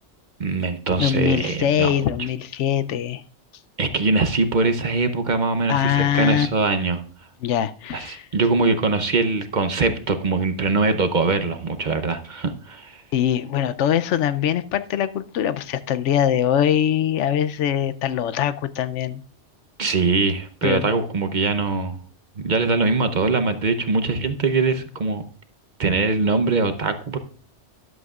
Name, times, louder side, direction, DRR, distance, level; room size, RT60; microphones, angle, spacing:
voice 1, 0.4-1.9 3.8-7.0 7.9-13.0 19.8-22.0 22.4-25.2 25.8-27.2, right 3 dB, 45° right, 0.9 m, -22 dB
voice 2, 1.0-3.2 5.7-6.5 7.4-8.3 13.1-19.2 20.6-20.9, left 9 dB, 85° left, 0.9 m, -22 dB
13.0 x 11.5 x 2.4 m
omnidirectional pair, 1.2 m